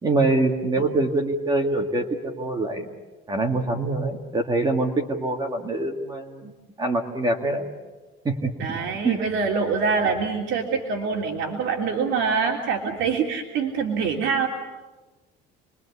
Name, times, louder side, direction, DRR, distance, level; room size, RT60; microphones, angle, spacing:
voice 1, 0.0-2.9 3.3-6.5 6.8-7.7 8.2-8.7 9.0-9.2, right 2 dB, 20° right, 2 dB, 2.2 m, -24 dB
voice 2, 8.6-14.5, right 5 dB, 65° right, 0 dB, 3.3 m, -25 dB
29.5 x 23.0 x 8.4 m, 1.2 s
cardioid pair, 165°, 21 cm